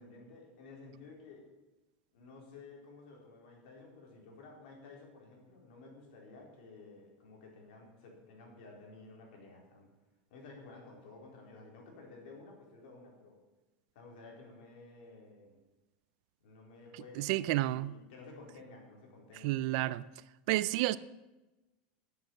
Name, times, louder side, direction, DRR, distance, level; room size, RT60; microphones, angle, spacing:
voice 1, 0.0-1.5 2.1-9.9 10.3-13.4 13.9-15.6 16.4-19.6, left 3 dB, 65° left, 4.0 m, -53 dB
voice 2, 17.2-17.9 19.4-20.0 20.5-21.0, right 16 dB, 50° right, 0.4 m, -30 dB
12.0 x 7.9 x 7.3 m
supercardioid pair, 170°, 5 cm